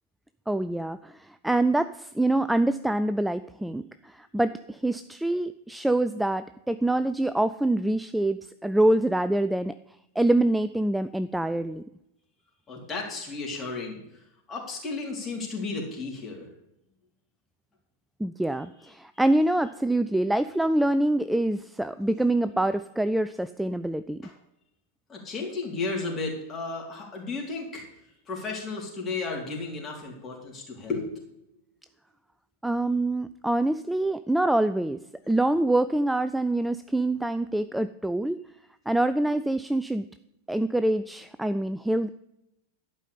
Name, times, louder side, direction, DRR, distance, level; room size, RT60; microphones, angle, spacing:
voice 1, 0.5-9.7 10.2-11.8 18.2-24.2 32.6-35.0 35.3-38.4 38.9-40.0 40.5-42.1, right 1 dB, 5° right, 13 dB, 0.3 m, -25 dB
voice 2, 12.7-16.5 24.2-24.3 25.1-27.8 28.3-31.6, left 3 dB, 20° left, -1 dB, 3.9 m, -34 dB
11.5 x 5.5 x 8.5 m, 0.85 s
figure-of-eight pair, 90°, 0 cm